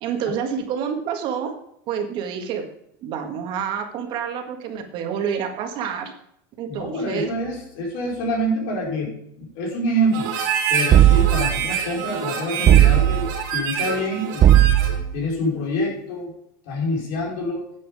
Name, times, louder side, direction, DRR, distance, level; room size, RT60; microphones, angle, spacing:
voice 1, 0.0-1.5 1.9-2.6 3.0-6.1 6.6-7.3, right 7 dB, 50° right, 5 dB, 1.8 m, -28 dB
voice 2, 6.7-10.3 10.7-14.6 15.1-16.3 16.7-17.6, equal, 65° left, -2 dB, 5.0 m, -26 dB
Harmonica, 10.1-15.0, right 7 dB, 80° right, 3.2 m, -27 dB
sound 1, 10.9-11.7 12.7-13.4 14.4-15.2, right 12 dB, 30° right, 0.6 m, -15 dB
10.0 x 7.8 x 4.9 m, 0.73 s
supercardioid pair, 150°, 11 cm